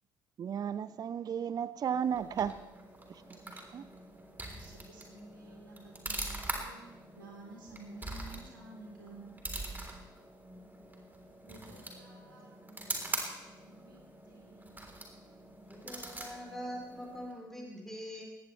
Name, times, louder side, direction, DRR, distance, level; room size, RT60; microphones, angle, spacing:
voice 1, 0.4-2.6 3.1-3.2 3.5-3.9, right 8 dB, 35° right, 0.5 m, -34 dB
sound 1, 1.9-17.4, right 2 dB, 15° right, 3.5 m, -44 dB
voice 2, 4.5-9.8 11.5-13.3 13.6-14.8, right 2 dB, 80° right, 3.6 m, -53 dB
voice 3, 15.6-18.3, equal, 5° left, 3.3 m, -43 dB
20.5 x 18.0 x 3.2 m
figure-of-eight pair, 50°, 11 cm